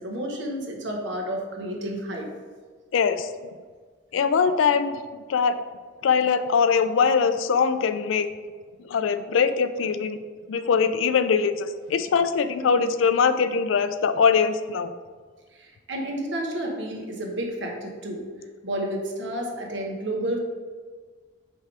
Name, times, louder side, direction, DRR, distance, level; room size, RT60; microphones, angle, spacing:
voice 1, 0.0-2.3 15.5-18.2 18.6-20.4, right 1 dB, 65° right, 1 dB, 1.1 m, -31 dB
voice 2, 2.9-3.3 4.1-5.0 5.3-5.6 6.0-8.3 8.9-10.2 10.5-14.9, left 6 dB, 80° left, 11 dB, 0.4 m, -22 dB
5.5 x 3.5 x 4.8 m, 1.5 s
head